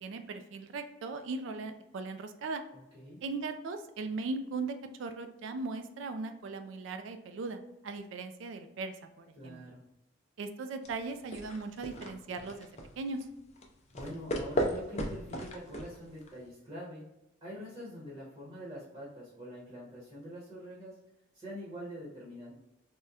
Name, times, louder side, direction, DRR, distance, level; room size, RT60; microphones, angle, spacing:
voice 1, 0.0-2.6 3.2-9.7 10.4-12.7 13.0-13.3, right 3 dB, 65° right, 8 dB, 0.3 m, -38 dB
voice 2, 2.7-3.2 9.4-9.8 13.9-17.0 17.4-21.0 21.3-22.5, equal, 20° right, -6 dB, 0.9 m, -45 dB
sound 1, 10.8-16.5, equal, 35° left, 0.5 m, -37 dB
3.5 x 2.1 x 2.7 m, 0.91 s
head